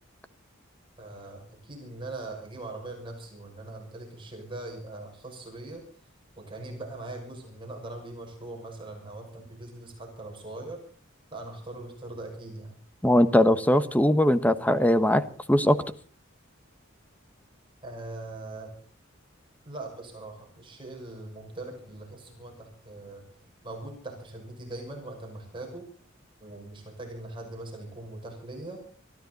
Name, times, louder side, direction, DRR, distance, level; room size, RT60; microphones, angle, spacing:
voice 1, 1.0-5.8 6.4-10.8 11.3-12.8 17.8-18.7 19.7-23.2 23.6-25.8 26.4-28.8, right 2 dB, 25° right, 1 dB, 6.2 m, -41 dB
voice 2, 13.0-15.2 15.5-15.8, left 1 dB, 10° left, 13 dB, 1.1 m, -20 dB
24.0 x 15.0 x 4.1 m, 0.40 s
head